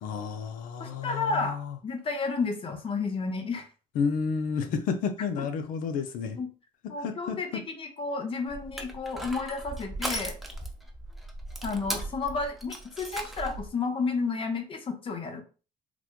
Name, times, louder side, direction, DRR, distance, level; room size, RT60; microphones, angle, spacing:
voice 1, 0.0-1.7 4.0-6.4 7.0-7.4, left 5 dB, 75° left, 8 dB, 0.6 m, -31 dB
voice 2, 0.8-3.7 5.4-5.5 6.4-6.5 6.9-10.4 11.6-15.4, left 4 dB, 40° left, 6 dB, 0.7 m, -32 dB
Crushing, 8.5-13.7, right 1 dB, ahead, 0.7 m, -37 dB
3.9 x 2.3 x 2.9 m, 0.35 s
cardioid pair, 95°, 14 cm